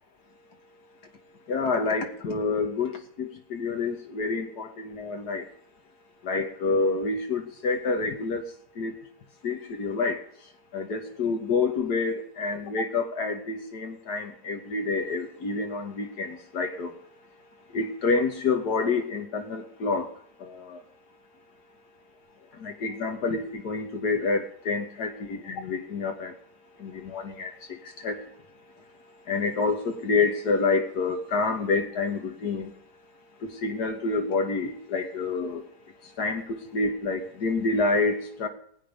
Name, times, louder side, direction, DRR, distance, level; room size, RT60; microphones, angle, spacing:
voice 1, 1.5-5.4 6.3-8.4 8.8-8.9 9.4-10.2 10.7-16.9 17.7-20.1 20.4-20.8 22.6-26.3 26.8-27.5 28.0-28.2 29.3-32.7 33.4-35.6 36.2-38.5, left 4 dB, 75° left, 4 dB, 1.9 m, -28 dB
20.0 x 8.9 x 5.3 m, 0.64 s
omnidirectional pair, 1.7 m